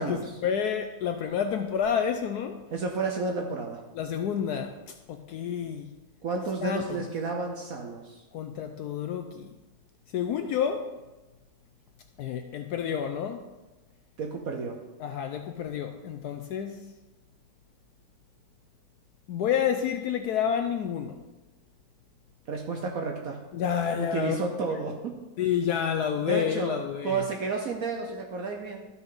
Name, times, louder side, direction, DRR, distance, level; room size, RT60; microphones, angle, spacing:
voice 1, 0.0-2.6 3.9-5.9 6.6-7.0 8.3-9.5 10.1-10.9 12.2-13.4 15.0-16.9 19.3-21.1 23.5-24.4 25.4-27.2, left 8 dB, 70° left, 6 dB, 1.0 m, -29 dB
voice 2, 2.7-3.8 6.2-8.2 14.2-14.8 22.5-23.4 24.0-25.2 26.2-26.8 27.0-28.9, right 4 dB, 60° right, 2 dB, 1.1 m, -31 dB
12.5 x 5.8 x 3.9 m, 1.1 s
omnidirectional pair, 1.9 m